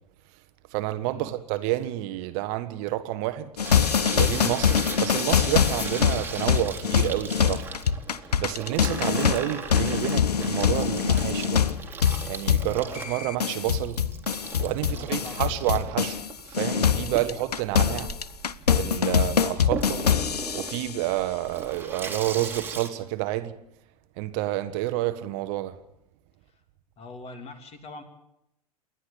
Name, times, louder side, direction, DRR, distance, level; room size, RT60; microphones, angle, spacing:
voice 1, 0.7-3.5 4.1-7.7 8.4-11.6 12.3-14.0 14.6-18.1 18.7-20.0 20.5-23.5 24.2-25.7, right 15 dB, 45° right, 1.2 m, -29 dB
sound 1, 3.6-16.3 16.5-20.9, left 8 dB, 75° left, 0.8 m, -24 dB
Water tap faucet / Sink (filling or washing), 3.6-22.9, right 4 dB, 10° right, 2.6 m, -38 dB
voice 2, 14.8-15.6 17.0-17.2 26.5-26.6 27.0-28.0, left 3 dB, 30° left, 3.2 m, -43 dB
28.0 x 11.0 x 8.9 m
figure-of-eight pair, 90°, 20 cm